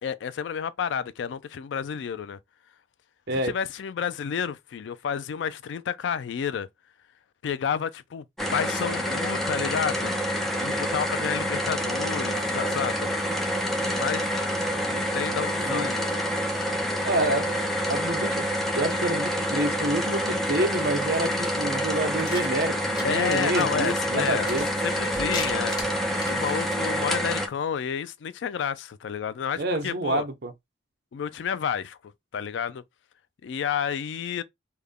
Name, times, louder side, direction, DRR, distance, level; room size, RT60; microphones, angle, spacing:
voice 1, 0.0-2.4 3.4-6.7 7.4-8.2 8.5-10.1 10.6-13.1 14.0-14.4 14.9-16.1 23.0-24.5 24.8-30.2 31.1-32.0 32.3-32.8 33.4-34.4, left 7 dB, 70° left, 0.3 m, -30 dB
sound 1, 8.4-27.5, equal, ahead, 0.5 m, -27 dB
voice 2, 17.0-17.5 17.9-18.5 18.7-24.7 29.6-30.5, right 1 dB, 55° right, 0.7 m, -28 dB
sound 2, 22.2-26.8, left 2 dB, 20° left, 0.9 m, -39 dB
3.4 x 2.1 x 3.5 m
head